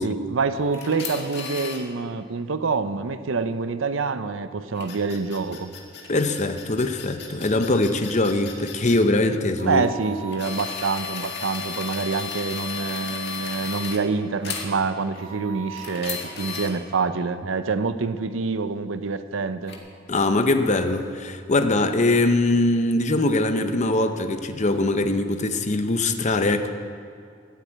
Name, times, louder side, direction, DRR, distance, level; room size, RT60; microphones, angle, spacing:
voice 1, 0.0-5.7 9.6-19.7, right 4 dB, 85° right, 12 dB, 0.7 m, -26 dB
sound 1, 0.5-1.8 4.7-9.0 9.6-14.0 14.4-14.7 15.1-16.7 19.7-19.8, left 5 dB, 60° left, 1.7 m, -34 dB
voice 2, 6.1-9.8 20.1-26.7, left 2 dB, 40° left, 8 dB, 0.8 m, -22 dB
13.0 x 8.1 x 8.6 m, 2.3 s
head